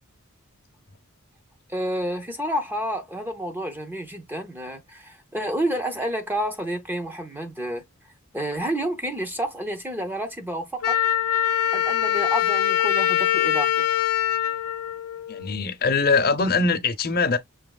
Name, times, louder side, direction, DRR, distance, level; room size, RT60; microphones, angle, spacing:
voice 1, 1.7-7.8 8.3-11.0 11.7-13.9, equal, 10° right, 0.6 m, -29 dB
Wind instrument woodwind instrument, 10.8-15.6, left 11 dB, 85° left, 0.4 m, -23 dB
voice 2, 15.3-17.4, left 4 dB, 45° left, 0.7 m, -22 dB
6.0 x 2.9 x 2.3 m
head